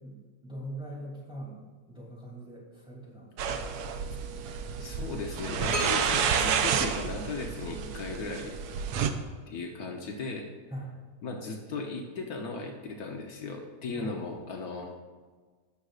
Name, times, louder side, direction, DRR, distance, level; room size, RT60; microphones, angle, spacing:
voice 1, 0.0-3.3 8.9-9.2 10.7-11.0 13.9-14.3, right 1 dB, 5° right, -5 dB, 2.7 m, -42 dB
sound 1, 3.4-9.1, right 7 dB, 85° right, 1.2 m, -30 dB
voice 2, 4.8-8.6 9.5-10.5 11.2-14.9, left 3 dB, 70° left, 2 dB, 1.3 m, -37 dB
sound 2, 5.7-7.6, right 1 dB, 20° right, 1.8 m, -37 dB
16.5 x 6.4 x 2.4 m, 1.4 s
omnidirectional pair, 1.7 m